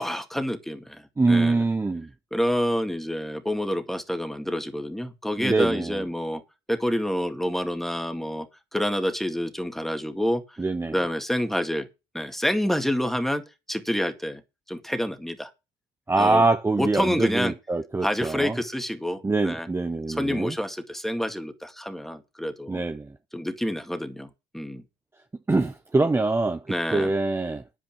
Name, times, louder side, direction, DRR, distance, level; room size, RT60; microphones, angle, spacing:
voice 1, 0.0-1.6 2.3-6.4 6.7-8.5 8.7-10.6 10.9-11.9 12.1-13.4 13.7-14.4 14.7-15.5 16.2-16.5 16.8-17.5 18.0-19.7 20.1-22.8 23.3-24.8 26.7-27.1, equal, ahead, 2.1 m, -28 dB
voice 2, 1.2-2.1 5.4-5.9 10.6-11.0 16.1-18.6 19.2-20.5 22.7-23.1 25.5-26.6 26.9-27.6, right 3 dB, 15° right, 0.9 m, -24 dB
9.9 x 9.0 x 6.0 m
cardioid pair, 110°, 17 cm